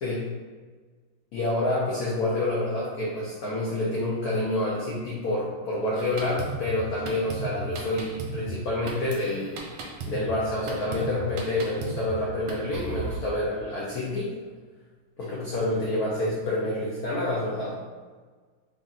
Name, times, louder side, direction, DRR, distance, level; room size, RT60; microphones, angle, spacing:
voice 1, 1.3-9.5 10.1-14.3 15.2-17.8, left 1 dB, 70° left, -6 dB, 0.9 m, -28 dB
Drum kit, 5.9-13.2, right 2 dB, 75° right, 1.4 m, -36 dB
3.6 x 2.4 x 4.0 m, 1.5 s
omnidirectional pair, 2.3 m